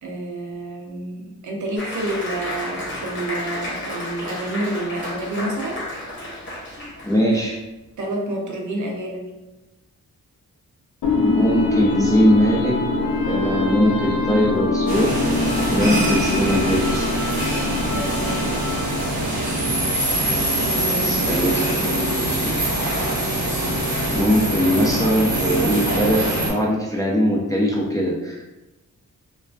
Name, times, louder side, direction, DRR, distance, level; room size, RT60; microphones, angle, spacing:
voice 1, 0.0-5.8 8.0-9.3 17.9-18.6 20.7-22.2, right 1 dB, 60° right, 1 dB, 0.5 m, -29 dB
Applause, 1.8-7.5, left 1 dB, 35° left, 0.8 m, -32 dB
voice 2, 7.0-7.6 11.2-12.8 13.2-15.1 15.7-17.1 21.0-21.6 21.9-22.5 24.1-28.5, equal, 10° left, -4 dB, 0.3 m, -21 dB
sound 1, 11.0-19.2, left 3 dB, 75° left, 0.5 m, -23 dB
sound 2, 14.9-26.5, right 1 dB, 85° right, 0.9 m, -23 dB
2.3 x 2.2 x 2.3 m, 1.0 s
wide cardioid pair, 110°, 34 cm